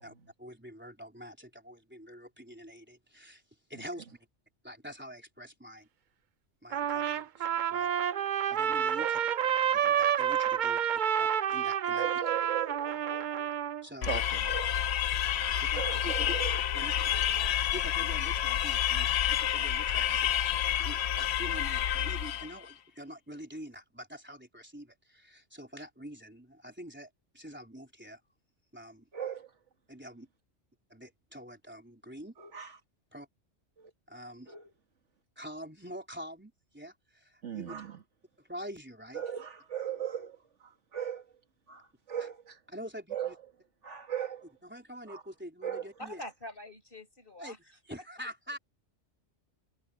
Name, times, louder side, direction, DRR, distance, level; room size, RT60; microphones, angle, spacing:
voice 1, 0.0-3.4 3.7-4.1 4.6-5.9 6.6-9.2 9.7-10.8 11.2-12.1 13.8-14.2 15.7-16.3 16.7-16.9 17.7-20.5 20.8-28.2 28.7-29.1 29.9-30.3 30.9-32.3 33.1-33.3 34.1-34.5 35.4-37.8 38.4-39.2 42.2-42.3 42.7-43.3 44.6-46.2 47.4-47.5 47.9-48.6, equal, 10° right, 3.9 m, -46 dB
Trumpet, 6.7-13.8, right 9 dB, 55° right, 0.6 m, -29 dB
voice 2, 11.9-13.5 14.0-15.1 15.3-17.5 29.1-29.5 32.4-32.8 33.8-33.9 34.5-34.7 37.4-38.0 39.1-41.3 41.7-42.6 43.1-43.3 43.8-44.4 45.1-45.2 45.6-45.9, right 8 dB, 80° right, 2.2 m, -38 dB
sound 1, 14.0-22.6, left 10 dB, 70° left, 0.9 m, -29 dB
voice 3, 46.0-48.3, left 1 dB, 50° left, 5.6 m, -46 dB
omnidirectional pair, 1.2 m